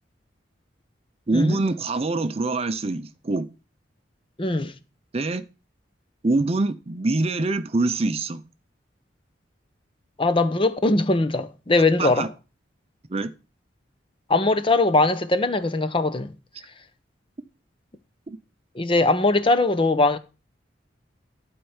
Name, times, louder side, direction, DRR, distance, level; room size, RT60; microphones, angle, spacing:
voice 1, 1.3-3.5 5.1-5.4 6.2-8.4 12.0-12.3 13.1-13.3 18.3-18.4, right 2 dB, 35° right, 0.6 m, -24 dB
voice 2, 4.4-4.7 10.2-12.3 14.3-16.3 18.8-20.2, left 2 dB, 30° left, 0.8 m, -21 dB
12.0 x 4.4 x 7.2 m
head